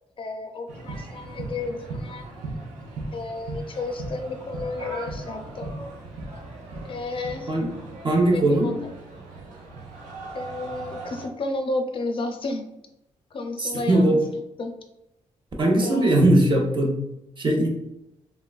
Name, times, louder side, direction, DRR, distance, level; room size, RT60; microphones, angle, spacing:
voice 1, 0.2-2.3 3.1-5.7 6.8-7.5 8.3-8.8 10.3-12.6 13.3-14.2 14.6-14.7 15.8-16.2, left 2 dB, 45° left, 5 dB, 0.4 m, -32 dB
sound 1, 0.7-11.3, right 2 dB, 75° right, 0.6 m, -38 dB
voice 2, 8.0-8.7 13.6-14.2 15.6-17.0 17.4-17.7, right 1 dB, 40° right, 0 dB, 0.7 m, -20 dB
3.3 x 2.2 x 2.2 m, 0.88 s
cardioid pair, 65°, 13 cm